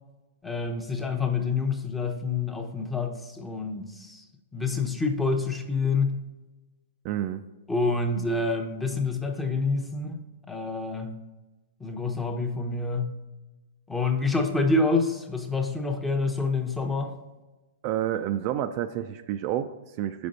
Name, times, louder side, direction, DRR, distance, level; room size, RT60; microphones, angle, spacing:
voice 1, 0.4-4.2 4.5-6.1 7.7-10.2 10.5-11.2 11.8-13.2 13.9-17.1, left 3 dB, 5° left, 4 dB, 0.8 m, -27 dB
voice 2, 7.0-7.4 17.8-20.3, right 11 dB, 40° right, 8 dB, 0.3 m, -29 dB
6.0 x 5.1 x 4.0 m, 1.1 s
hypercardioid pair, 135°, 0 cm